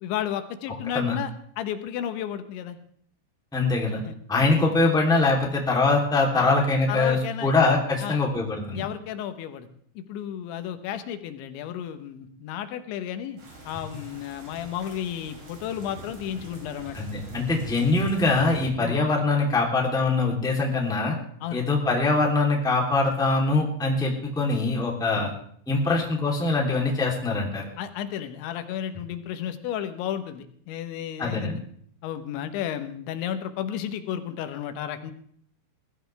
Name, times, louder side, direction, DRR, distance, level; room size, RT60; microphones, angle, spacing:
voice 1, 0.0-1.3 1.6-2.8 4.1-4.2 6.4-6.5 6.9-7.5 8.0-8.3 8.7-9.7 10.0-17.0 18.8-19.0 21.4-21.6 25.2-25.3 25.9-26.0 27.8-31.6 32.0-35.1, left 10 dB, 85° left, 9 dB, 3.5 m, -33 dB
voice 2, 3.5-4.0 4.3-8.9 16.9-21.1 21.5-25.3 25.7-27.7 31.2-31.6, left 3 dB, ahead, -1 dB, 2.1 m, -23 dB
sound 1, 13.4-18.7, right 2 dB, 80° right, 9.0 m, -43 dB
20.5 x 13.5 x 3.4 m, 0.62 s
omnidirectional pair, 5.2 m